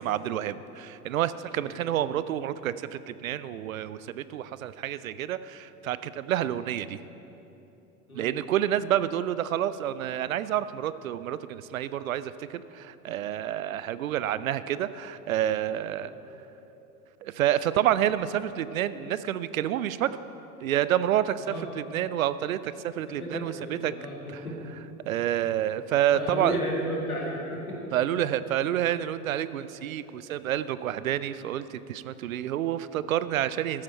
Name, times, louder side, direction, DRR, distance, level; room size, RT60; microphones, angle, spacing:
voice 1, 0.0-7.0 8.1-16.1 17.2-20.2 20.6-23.9 25.1-26.6 27.9-33.8, right 11 dB, 70° right, 15 dB, 0.5 m, -28 dB
voice 2, 23.1-24.7 26.1-27.9, equal, 85° left, -2 dB, 2.1 m, -34 dB
13.5 x 8.8 x 4.4 m, 3.0 s
figure-of-eight pair, 80°, 42 cm